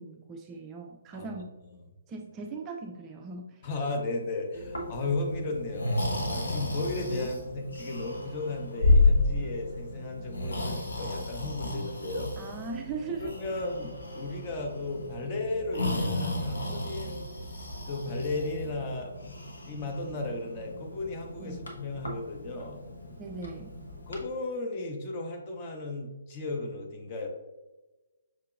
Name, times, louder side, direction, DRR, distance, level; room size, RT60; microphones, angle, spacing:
voice 1, 0.0-1.5 2.1-3.6 12.4-13.3 21.4-21.7 23.2-23.7, right 4 dB, 20° right, 1 dB, 0.3 m, -39 dB
voice 2, 3.6-12.3 13.2-17.3 17.9-22.8 24.1-27.3, left 2 dB, 25° left, 1 dB, 0.7 m, -35 dB
sound 1, 4.2-17.2, equal, 90° left, 1.4 m, -48 dB
Breathing, 4.5-24.2, left 2 dB, 65° left, 0.9 m, -32 dB
5.9 x 2.8 x 2.4 m, 1.1 s
figure-of-eight pair, 135°, 0 cm